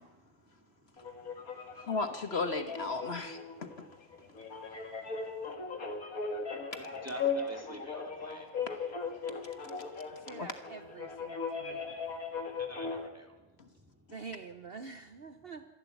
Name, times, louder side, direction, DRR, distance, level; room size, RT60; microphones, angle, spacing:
voice 1, 0.0-1.9 3.5-6.3 6.6-8.7 9.2-10.3 11.3-14.1, equal, 10° right, 3 dB, 2.9 m, -52 dB
sound 1, 1.0-13.1, left 5 dB, 80° left, 2.7 m, -38 dB
voice 2, 1.8-3.9 10.4-10.5 13.6-13.7, left 3 dB, 50° left, 8 dB, 1.5 m, -35 dB
voice 3, 10.1-12.0 14.1-15.7, right 4 dB, 45° right, 9 dB, 1.1 m, -46 dB
26.0 x 11.5 x 9.5 m, 1.1 s
omnidirectional pair, 1.5 m